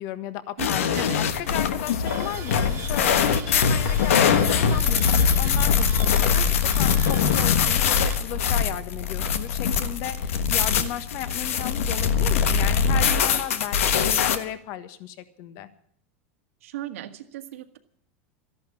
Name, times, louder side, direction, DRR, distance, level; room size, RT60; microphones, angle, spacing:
voice 1, 0.0-15.7, left 12 dB, 50° left, 12 dB, 1.5 m, -35 dB
sound 1, 0.6-14.4, left 7 dB, 90° left, 1.4 m, -22 dB
voice 2, 0.6-1.2 10.7-10.9 16.6-17.8, right 13 dB, 85° right, 7 dB, 1.8 m, -37 dB
sound 2, 2.0-8.2, right 11 dB, 40° right, 1.5 m, -41 dB
13.5 x 11.5 x 8.4 m, 0.64 s
supercardioid pair, 135°, 7 cm